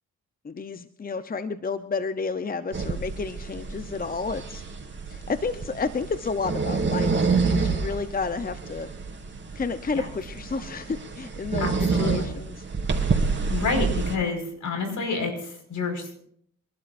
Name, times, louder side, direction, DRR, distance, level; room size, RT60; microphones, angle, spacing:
voice 1, 0.4-4.6 5.1-8.9 9.5-12.6, left 4 dB, 30° left, 11 dB, 0.8 m, -31 dB
sound 1, 2.7-14.2, right 4 dB, 35° right, 3.5 m, -28 dB
voice 2, 11.6-12.3 13.5-16.2, left 4 dB, 65° left, 4 dB, 5.3 m, -29 dB
27.5 x 12.0 x 2.6 m, 0.66 s
supercardioid pair, 60°, 32 cm